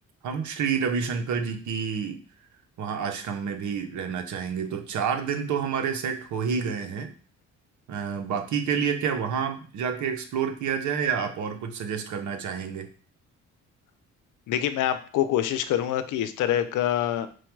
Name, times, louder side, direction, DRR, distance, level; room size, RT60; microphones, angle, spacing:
voice 1, 0.2-2.2 2.8-7.1 7.9-12.9, right 6 dB, 70° right, 5 dB, 0.8 m, -29 dB
voice 2, 14.5-17.3, left 11 dB, 80° left, 11 dB, 0.5 m, -25 dB
4.6 x 2.2 x 4.5 m, 0.40 s
cardioid pair, 90°, 30 cm